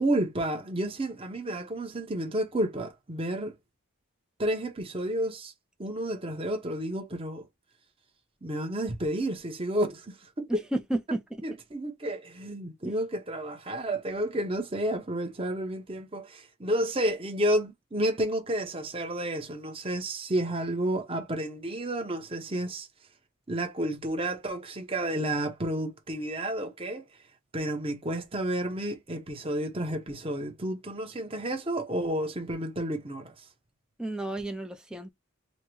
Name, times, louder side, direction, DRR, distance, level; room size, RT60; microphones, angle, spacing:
voice 1, 0.0-3.5 4.4-5.5 5.8-7.5 8.4-10.5 11.4-22.9 23.5-27.1 27.5-33.4, right 1 dB, 25° right, 0.9 m, -31 dB
voice 2, 10.5-11.4 12.8-12.9 34.0-35.1, right 1 dB, 5° right, 0.4 m, -32 dB
6.4 x 2.1 x 3.0 m
head